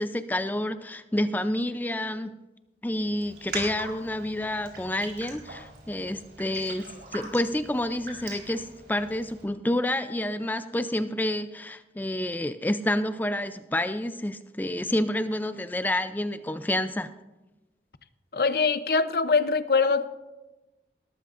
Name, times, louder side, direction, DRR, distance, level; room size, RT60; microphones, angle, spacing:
voice 1, 0.0-2.3 2.8-17.1, left 1 dB, 10° left, 11 dB, 0.4 m, -29 dB
Raindrop, 3.2-9.4, right 3 dB, 60° right, 4.0 m, -42 dB
voice 2, 18.3-20.1, left 4 dB, 60° left, 13 dB, 0.6 m, -23 dB
19.5 x 13.0 x 2.5 m, 1.1 s
head